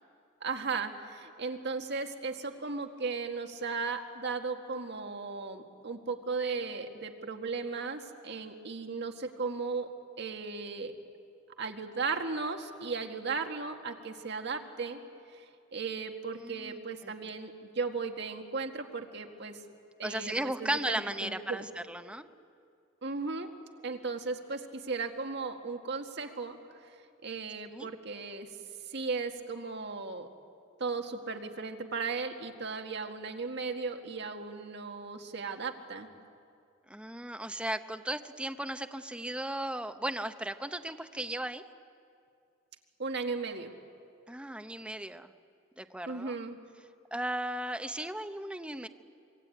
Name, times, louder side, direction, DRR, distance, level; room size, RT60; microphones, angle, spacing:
voice 1, 0.4-9.9 10.2-10.9 11.6-15.0 15.3-15.4 15.7-19.6 20.0-21.7 23.0-23.5 23.8-26.6 27.2-28.5 28.9-30.3 30.8-36.1 43.0-43.7 46.1-46.6, right 4 dB, 60° right, 4 dB, 1.9 m, -36 dB
voice 2, 16.4-17.1 20.0-22.3 27.7-27.9 36.9-41.6 44.3-45.3 45.8-46.3 47.1-48.9, right 1 dB, 5° right, 8 dB, 0.9 m, -36 dB
25.0 x 23.0 x 9.3 m, 2.4 s
head